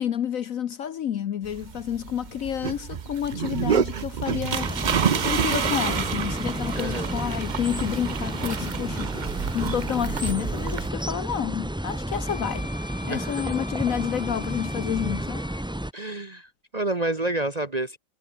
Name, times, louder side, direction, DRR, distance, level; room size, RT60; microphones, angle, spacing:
voice 1, 0.0-4.8 5.2-9.1 9.5-12.7 13.0-15.4, left 9 dB, 60° left, 1.1 m, -29 dB
sound 1, 1.4-10.9, right 7 dB, 65° right, 0.4 m, -29 dB
sound 2, 4.5-15.9, right 1 dB, 5° right, 0.5 m, -31 dB
voice 2, 6.8-7.1 13.1-13.3 15.9-18.0, right 2 dB, 30° right, 1.0 m, -29 dB
Wind instrument woodwind instrument, 12.3-15.6, left 2 dB, 35° left, 3.5 m, -43 dB
omnidirectional pair, 1.9 m